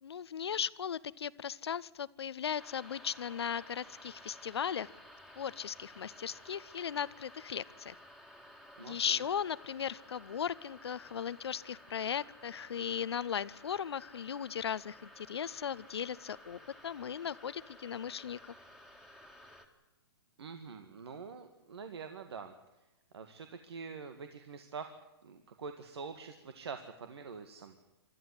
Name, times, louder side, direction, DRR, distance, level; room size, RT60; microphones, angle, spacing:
voice 1, 0.0-4.9 5.4-8.0 8.8-18.4, left 8 dB, 85° left, 19 dB, 0.8 m, -37 dB
sound 1, 2.6-19.7, left 1 dB, 5° right, 2.1 m, -55 dB
voice 2, 8.8-9.2 20.4-22.5 23.1-27.7, right 5 dB, 80° right, 7 dB, 1.9 m, -45 dB
24.5 x 13.5 x 9.9 m, 1.0 s
hypercardioid pair, 145°, 13 cm